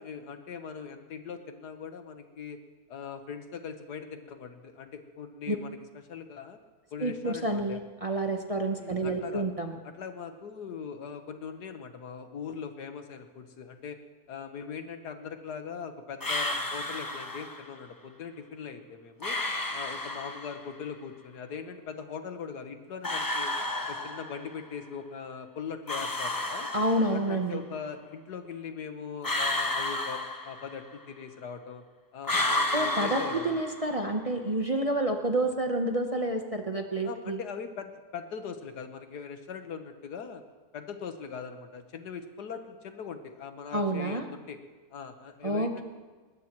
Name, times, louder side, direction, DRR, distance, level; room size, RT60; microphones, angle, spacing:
voice 1, 0.0-2.6 2.9-5.8 6.1-6.6 6.9-7.8 8.8-9.4 9.8-14.0 14.3-19.4 19.7-23.5 23.9-26.7 27.1-31.8 32.1-33.6 37.0-40.4 40.7-44.6 44.9-45.8, left 6 dB, 85° left, 7 dB, 1.8 m, -40 dB
voice 2, 7.0-9.8 26.7-27.6 32.7-37.4 43.7-44.3 45.4-45.8, right 1 dB, 30° right, 3 dB, 0.8 m, -29 dB
sound 1, 16.2-17.7 19.2-20.7 23.0-24.6 25.9-27.4 29.2-31.0 32.2-34.1, left 2 dB, 20° left, 0.7 m, -32 dB
21.0 x 19.5 x 3.1 m, 1.4 s
omnidirectional pair, 1.7 m